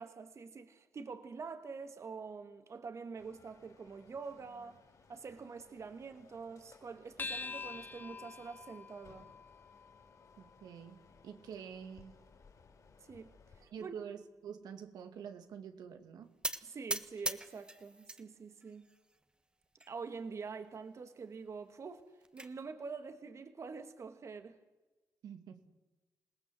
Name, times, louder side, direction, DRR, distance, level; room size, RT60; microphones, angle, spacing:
voice 1, 0.0-4.8 5.1-9.3 13.1-14.0 16.6-18.9 19.9-22.1 22.3-24.6, right 5 dB, 45° right, 1.6 m, -46 dB
sound 1, 3.2-13.6, left 4 dB, 55° left, 5.4 m, -62 dB
sound 2, 7.2-11.9, left 4 dB, 30° left, 1.3 m, -47 dB
voice 2, 10.4-12.2 13.6-16.3 25.2-25.6, right 7 dB, 85° right, 2.1 m, -47 dB
sound 3, 16.4-18.2 18.6-19.2 19.8-19.9 20.2-20.3 20.6-20.7 21.9-22.5, right 2 dB, 15° right, 1.5 m, -40 dB
27.5 x 18.5 x 7.6 m
cardioid pair, 90°, 7 cm